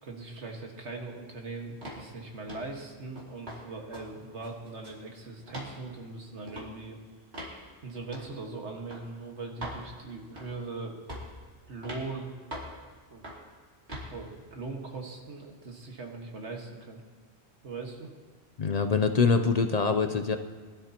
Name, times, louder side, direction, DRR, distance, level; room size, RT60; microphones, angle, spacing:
voice 1, 0.0-7.0 7.8-11.0 11.7-12.3 13.1-13.3 14.0-17.0 17.6-18.1, right 3 dB, 90° right, 1 dB, 2.0 m, -40 dB
sound 1, 1.8-2.1 2.5-2.7 3.2-3.6 3.9-4.1 4.4-5.0 5.5-5.7 6.5-6.7 7.3-7.6 8.1-8.3 8.9-9.0 9.6-9.8 10.4-10.6 11.1-11.4 11.8-12.1 12.5-12.8 13.2-13.5 13.9-14.1, equal, 70° right, 3.1 m, -41 dB
voice 2, 18.6-20.4, left 5 dB, 45° left, 7 dB, 0.6 m, -24 dB
22.0 x 12.5 x 2.9 m, 1.5 s
omnidirectional pair, 1.1 m